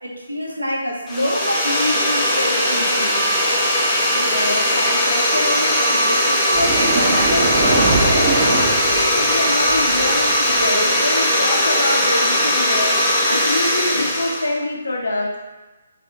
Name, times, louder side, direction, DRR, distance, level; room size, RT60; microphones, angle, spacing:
voice 1, 0.0-3.3, left 1 dB, 85° right, -1 dB, 0.7 m, -26 dB
sound 1, 1.1-14.5, equal, 5° left, 0.5 m, -19 dB
voice 2, 4.1-8.5 8.9-15.4, left 2 dB, 70° left, -2 dB, 0.5 m, -25 dB
sound 2, 6.5-10.9, right 2 dB, 30° right, 0.7 m, -22 dB
3.5 x 2.4 x 2.7 m, 1.2 s
figure-of-eight pair, 140°, 0 cm